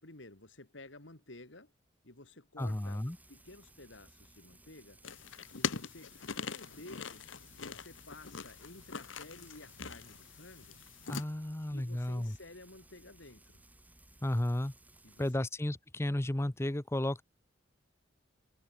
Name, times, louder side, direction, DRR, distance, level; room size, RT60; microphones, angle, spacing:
voice 1, 0.0-1.7 2.0-3.0 3.3-5.0 5.5-7.2 7.6-10.8 11.7-13.6 15.0-15.5, left 2 dB, 70° left, 3.3 m, -53 dB
voice 2, 2.6-3.2 11.1-12.4 14.2-14.7 15.2-17.2, left 1 dB, 15° left, 0.7 m, -33 dB
Frying (food), 2.6-15.3, right 1 dB, 10° right, 4.1 m, -61 dB
sound 1, 5.0-11.2, left 6 dB, 90° left, 1.1 m, -42 dB
head